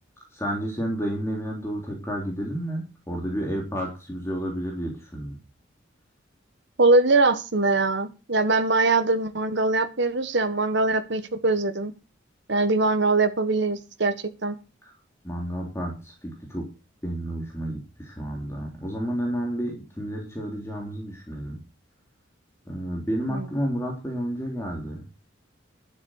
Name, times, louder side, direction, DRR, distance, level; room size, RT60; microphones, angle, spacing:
voice 1, 0.3-5.4 14.8-14.9 15.2-16.7 17.0-21.6 22.7-25.0, equal, 15° left, -1 dB, 3.4 m, -31 dB
voice 2, 6.8-11.9 12.5-14.1 14.4-14.6 23.3-23.5, right 3 dB, 60° right, 8 dB, 1.5 m, -22 dB
11.5 x 7.8 x 6.6 m, 0.30 s
head